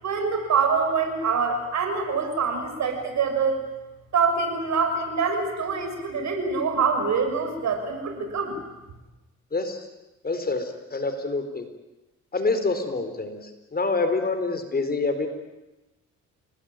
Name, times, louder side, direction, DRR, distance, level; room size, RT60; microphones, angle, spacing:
voice 1, 0.0-3.6 4.1-8.6, right 5 dB, 65° right, 6 dB, 6.5 m, -25 dB
voice 2, 9.5-9.9 10.2-11.6 12.3-15.3, left 3 dB, 30° left, 8 dB, 4.4 m, -27 dB
29.5 x 19.0 x 9.1 m, 1.0 s
cardioid pair, 90°, 30 cm